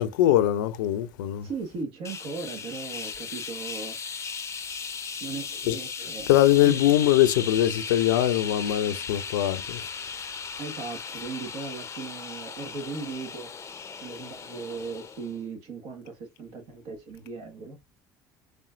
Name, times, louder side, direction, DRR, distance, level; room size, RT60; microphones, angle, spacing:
voice 1, 0.0-1.5 5.7-5.8 6.3-9.8, left 13 dB, 80° left, 0.5 m, -22 dB
voice 2, 1.4-4.0 5.2-6.3 6.6-6.8 10.6-13.5 14.0-17.8, right 4 dB, 65° right, 1.5 m, -37 dB
sound 1, 2.0-15.4, left 6 dB, 30° left, 0.6 m, -37 dB
4.3 x 3.3 x 2.5 m
hypercardioid pair, 65°, 10 cm